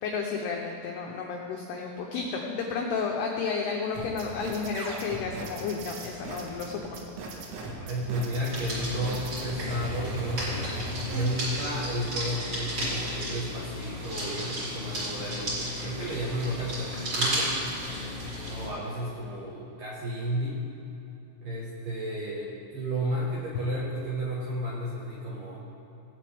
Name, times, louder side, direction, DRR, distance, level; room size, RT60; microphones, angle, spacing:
voice 1, 0.0-7.3, left 5 dB, 85° left, 0 dB, 2.3 m, -32 dB
sound 1, 3.9-11.2, right 1 dB, 85° right, 3.9 m, -38 dB
voice 2, 7.8-10.8 11.1-17.5 18.5-20.6 21.4-25.6, right 1 dB, 65° right, -6 dB, 2.2 m, -32 dB
sound 2, 8.4-18.7, equal, 30° right, 3.6 m, -33 dB
21.0 x 8.5 x 3.4 m, 3.0 s
omnidirectional pair, 5.8 m